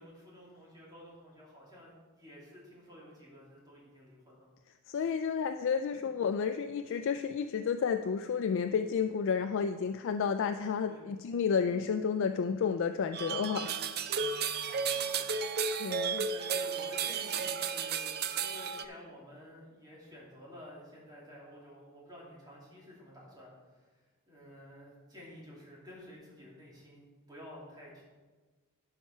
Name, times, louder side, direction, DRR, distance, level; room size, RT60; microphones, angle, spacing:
voice 1, 0.0-4.5 10.9-11.1 16.3-23.5 23.8-23.9 24.3-28.0, equal, 20° right, -6 dB, 3.1 m, -51 dB
voice 2, 4.9-13.9 14.4-15.0 15.8-16.3, left 6 dB, 60° left, 9 dB, 0.4 m, -31 dB
sound 1, 13.1-18.8, right 6 dB, 50° right, 0.5 m, -33 dB
11.5 x 5.9 x 4.3 m, 1.3 s
head